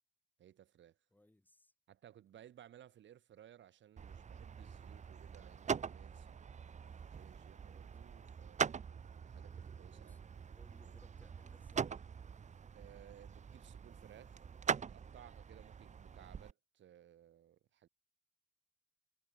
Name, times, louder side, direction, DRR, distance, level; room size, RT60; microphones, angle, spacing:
voice 1, 0.4-1.0 1.9-6.4 7.1-10.4 10.8-11.0 12.7-14.4 14.9-17.9, right 11 dB, 70° right, 2.9 m, -60 dB
voice 2, 1.1-1.7 7.6-7.9 9.9-10.2 10.5-12.0, left 1 dB, 10° left, 7.9 m, -67 dB
sound 1, 4.0-16.5, right 6 dB, 35° right, 0.9 m, -43 dB
cardioid pair, 90°, 20 cm